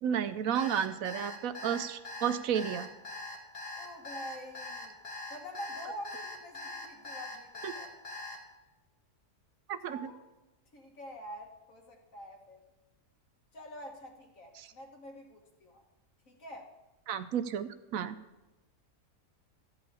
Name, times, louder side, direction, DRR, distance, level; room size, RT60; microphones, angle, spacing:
voice 1, 0.0-2.9 7.6-7.7 9.7-10.1 14.6-14.7 17.1-18.1, right 8 dB, 75° right, 12 dB, 1.0 m, -32 dB
Alarm, 0.5-8.4, left 2 dB, 40° left, 2.0 m, -42 dB
voice 2, 3.8-5.0 5.3-7.9 9.8-10.2 10.7-12.6 13.5-15.8 16.3-16.7, equal, 60° left, 2 dB, 2.0 m, -46 dB
13.5 x 5.0 x 8.5 m, 1.0 s
omnidirectional pair, 1.6 m